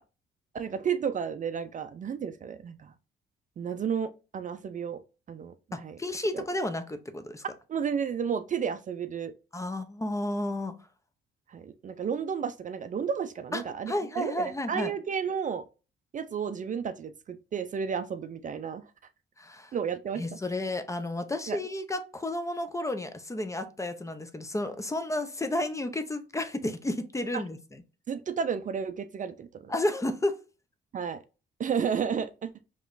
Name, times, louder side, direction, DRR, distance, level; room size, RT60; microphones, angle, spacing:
voice 1, 0.5-2.9 3.6-5.0 5.3-6.0 6.3-6.4 7.7-9.3 11.5-15.6 16.1-18.9 19.7-20.2 21.5-21.6 27.3-27.4 28.1-29.7 30.9-31.2 31.6-32.5, right 7 dB, 40° right, 0.4 m, -32 dB
voice 2, 5.7-7.4 9.5-10.8 13.5-14.9 19.4-19.7 20.2-27.8 29.7-30.3, left 1 dB, 15° left, 0.6 m, -32 dB
4.9 x 3.0 x 2.5 m
cardioid pair, 90°, 20 cm